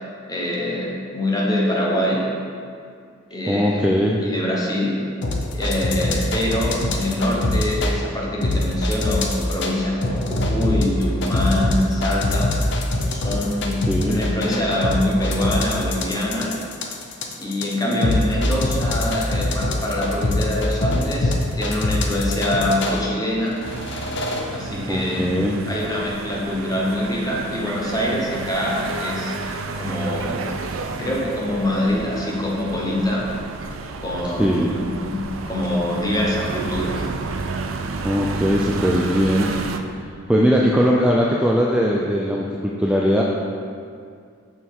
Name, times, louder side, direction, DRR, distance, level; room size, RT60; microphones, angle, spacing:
voice 1, 0.3-2.3 3.3-3.9 4.2-5.0 5.5-12.5 13.1-16.5 17.4-23.6 24.5-25.3 25.7-29.4 29.8-30.4 31.0-33.3 34.0-37.0, left 1 dB, 20° left, -3 dB, 1.1 m, -24 dB
voice 2, 3.5-4.2 13.9-14.2 24.9-25.5 34.4-34.7 38.0-39.5 40.3-43.2, equal, 5° right, -3 dB, 0.4 m, -19 dB
sound 1, 5.2-7.9 8.4-9.7 10.0-23.0 23.6-24.4, left 2 dB, 60° left, 0.7 m, -23 dB
sound 2, 23.6-39.8, right 3 dB, 70° right, 0.5 m, -31 dB
6.9 x 6.1 x 3.7 m, 2.2 s
head